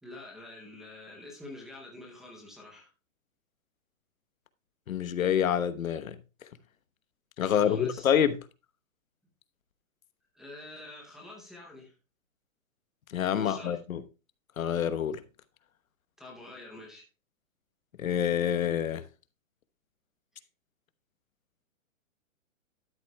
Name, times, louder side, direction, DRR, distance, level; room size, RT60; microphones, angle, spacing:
voice 1, 0.0-2.9 7.4-8.1 10.3-11.9 13.3-13.8 16.2-17.1 20.3-20.4, left 2 dB, ahead, 0.6 m, -46 dB
voice 2, 4.9-6.2 7.4-8.4 13.1-14.0 14.6-15.2 18.0-19.0, left 9 dB, 85° left, 1.1 m, -27 dB
12.5 x 7.6 x 2.2 m
hypercardioid pair, 165°, 40 cm